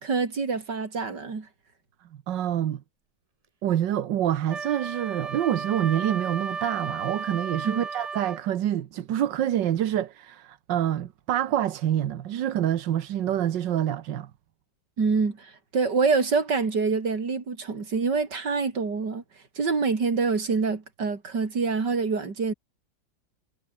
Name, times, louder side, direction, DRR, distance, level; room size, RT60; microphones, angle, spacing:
voice 1, 0.0-1.5 7.6-7.8 15.0-19.2 19.6-22.5, right 4 dB, 75° right, 3.7 m, -26 dB
voice 2, 2.3-2.8 3.6-14.3, right 11 dB, 90° right, 1.7 m, -26 dB
Wind instrument woodwind instrument, 4.5-8.5, right 5 dB, 30° right, 0.7 m, -34 dB
omnidirectional pair, 1.9 m